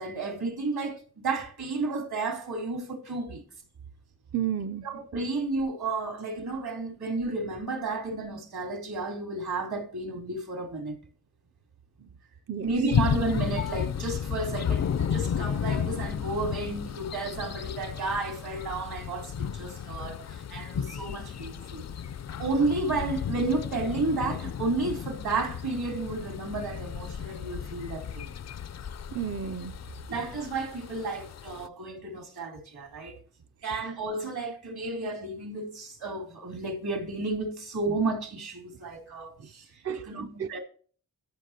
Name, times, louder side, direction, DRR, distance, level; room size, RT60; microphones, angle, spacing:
voice 1, 0.0-3.4 4.8-10.9 12.6-21.9 22.4-28.3 30.1-33.2 33.6-40.6, right 3 dB, 75° right, 3.2 m, -32 dB
voice 2, 4.3-4.8 12.0-12.1 12.5-12.7 29.1-29.7 39.4-39.5 39.8-40.6, right 9 dB, 40° right, 0.5 m, -32 dB
sound 1, 12.9-31.7, left 8 dB, 45° left, 0.4 m, -33 dB
13.5 x 6.5 x 2.8 m
cardioid pair, 70°, 38 cm